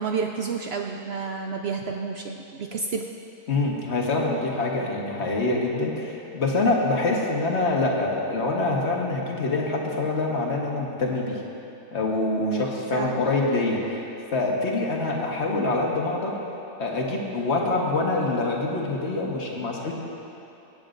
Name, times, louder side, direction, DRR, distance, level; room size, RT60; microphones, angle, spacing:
voice 1, 0.0-3.1 12.4-13.1, right 5 dB, 80° right, 2 dB, 0.5 m, -30 dB
voice 2, 3.5-11.4 11.9-14.0 14.3-16.4 16.8-19.9, left 2 dB, 45° left, -2 dB, 1.5 m, -25 dB
18.5 x 9.2 x 2.6 m, 2.9 s
omnidirectional pair, 1.6 m